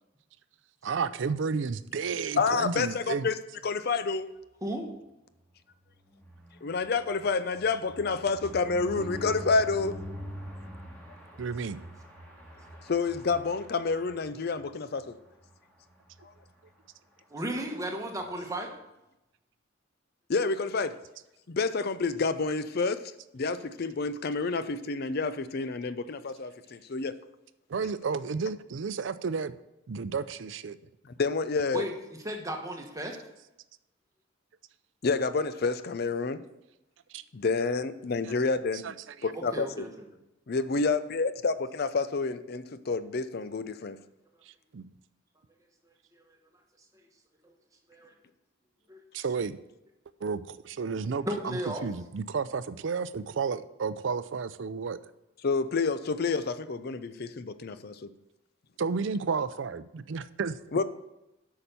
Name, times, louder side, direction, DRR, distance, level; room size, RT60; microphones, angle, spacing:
voice 1, 0.8-3.3 11.4-11.8 27.7-29.5 29.9-30.8 37.1-37.2 38.2-38.3 38.8-38.9 44.5-44.9 49.1-49.6 50.2-51.6 51.8-55.0 58.8-60.6, right 5 dB, 65° right, 14 dB, 0.4 m, -32 dB
voice 2, 2.4-3.4 3.6-4.3 6.6-9.9 12.9-15.2 16.2-16.3 20.3-20.9 21.5-23.0 23.3-27.1 31.0-31.8 35.0-36.4 37.3-38.8 39.2-39.7 40.5-44.0 55.4-58.1 60.7-60.8, left 4 dB, 50° left, 13 dB, 0.5 m, -29 dB
sound 1, 5.8-14.7 15.1-15.3 15.5-15.6 15.9-16.2, equal, 10° left, 1.9 m, -44 dB
voice 3, 17.3-18.7 31.7-33.3 39.3-40.1 45.8-46.4 46.8-47.1 47.4-47.5 47.9-48.1 48.9-49.0 51.1-51.8 57.6-57.7, equal, 15° right, 2 dB, 1.2 m, -36 dB
8.5 x 5.8 x 6.8 m, 0.93 s
head